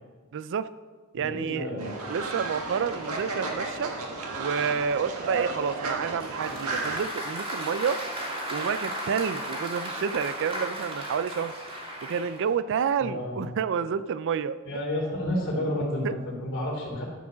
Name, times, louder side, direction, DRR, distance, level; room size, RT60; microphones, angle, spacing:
voice 1, 0.3-0.7 1.1-1.7 2.1-3.9 4.4-8.0 8.5-11.5 12.0-14.6 16.0-16.1, right 7 dB, 60° right, 14 dB, 0.4 m, -29 dB
voice 2, 1.1-2.0 13.0-13.4 14.6-17.0, left 1 dB, 60° left, -2 dB, 2.9 m, -30 dB
Fowl, 1.8-7.0, right 3 dB, 85° right, 1.5 m, -33 dB
Applause, 6.2-12.5, right 1 dB, 25° right, 2.0 m, -35 dB
12.0 x 4.8 x 6.1 m, 1.4 s
head